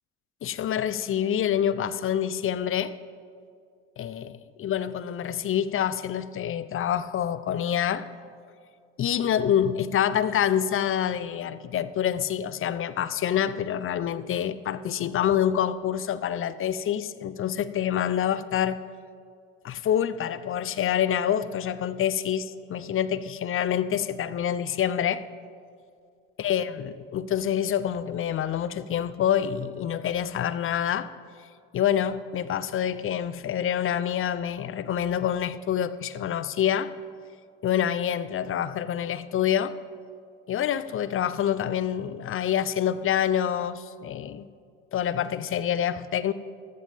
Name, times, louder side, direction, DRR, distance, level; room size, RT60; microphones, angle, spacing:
voice 1, 0.4-3.0 4.0-8.1 9.0-18.8 19.6-25.2 26.4-31.1 31.7-36.9 37.6-39.8 40.5-44.5 44.9-46.3, left 9 dB, 40° left, 0.6 m, -27 dB
13.5 x 13.0 x 3.5 m
hypercardioid pair, 65°, 31 cm